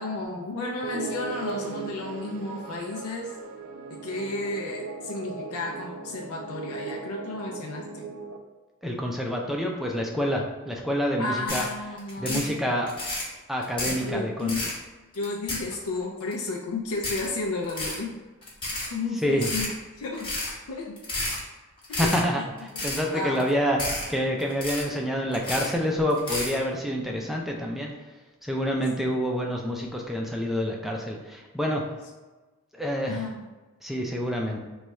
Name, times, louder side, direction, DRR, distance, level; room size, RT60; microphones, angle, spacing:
voice 1, 0.0-3.4 3.9-8.1 11.2-12.5 13.9-14.7 15.1-18.2 18.8-19.7 20.0-20.4 20.7-21.0 21.9-22.1 23.1-23.5 28.8-28.9 33.1-33.5, left 3 dB, 90° left, 0 dB, 0.4 m, -33 dB
sound 1, 0.8-8.4, right 4 dB, 80° right, 0.4 m, -37 dB
voice 2, 8.8-11.7 12.2-12.9 13.5-14.5 19.2-19.5 22.0-23.8 24.1-31.8 32.7-33.2 33.8-34.6, equal, ahead, -1 dB, 0.3 m, -27 dB
sound 2, 11.5-11.7 12.0-12.5 12.9-13.3 13.6-14.0 14.4-14.8 15.1-16.0 16.3-16.4 16.9-17.3 17.6-18.0 18.4-18.9 19.3-19.7 20.2-20.5 21.0-21.4 21.8-22.2 22.6-23.0 23.3-23.5 23.8-24.1 24.4-25.0 25.3-25.7 26.1-26.5, left 2 dB, 25° left, 0.8 m, -31 dB
3.1 x 2.3 x 4.1 m, 1.2 s
head